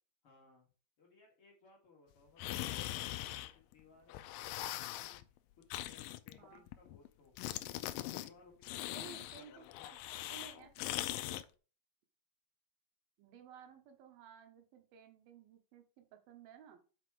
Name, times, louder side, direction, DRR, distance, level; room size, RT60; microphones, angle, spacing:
voice 1, 0.2-0.7 1.0-5.2 5.6-7.6 8.0-10.1, left 4 dB, 45° left, -1 dB, 2.3 m, -63 dB
sound 1, 2.4-3.8 4.1-5.2 5.7-7.1 7.4-8.3 8.6-11.4, left 15 dB, 80° left, 2.0 m, -41 dB
voice 2, 8.9-10.9 11.3-11.5 13.2-16.8, right 8 dB, 80° right, 6 dB, 2.9 m, -57 dB
6.1 x 5.5 x 4.8 m, 0.36 s
omnidirectional pair, 4.3 m